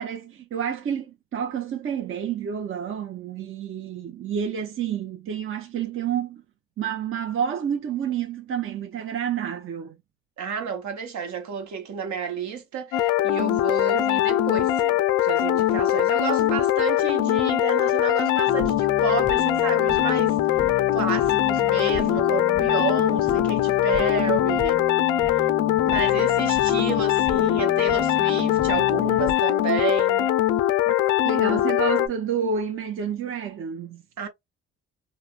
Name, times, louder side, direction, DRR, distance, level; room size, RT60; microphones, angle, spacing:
voice 1, 0.0-6.4 6.8-9.9 30.9-31.0 31.2-34.0, right 8 dB, 45° right, 0.5 m, -29 dB
voice 2, 10.4-20.4 20.9-24.8 25.8-30.3 34.2-34.3, right 6 dB, 70° right, 1.0 m, -31 dB
sound 1, 12.9-32.1, left 13 dB, 85° left, 0.5 m, -22 dB
sound 2, 18.5-29.3, left 6 dB, 25° left, 0.4 m, -35 dB
3.2 x 2.0 x 2.3 m
cardioid pair, 90°, 30 cm